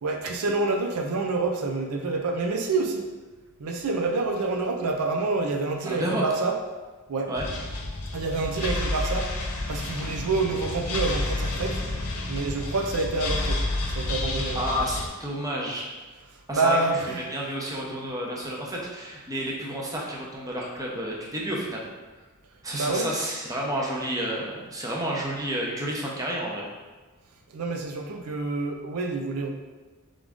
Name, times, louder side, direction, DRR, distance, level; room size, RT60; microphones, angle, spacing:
voice 1, 0.0-3.1 3.6-6.5 7.1-7.3 8.1-9.3 9.7-11.8 12.3-13.6 13.9-14.6 16.5-17.2 22.7-23.1 27.5-29.5, right 3 dB, 85° right, 2 dB, 0.5 m, -27 dB
voice 2, 5.8-6.2 7.3-7.5 14.5-15.9 16.5-17.0 17.3-21.9 22.6-26.7, right 1 dB, 15° right, -3 dB, 0.7 m, -30 dB
sound 1, 7.3-15.1, left 2 dB, 85° left, 0.7 m, -30 dB
3.7 x 3.6 x 3.5 m, 1.3 s
head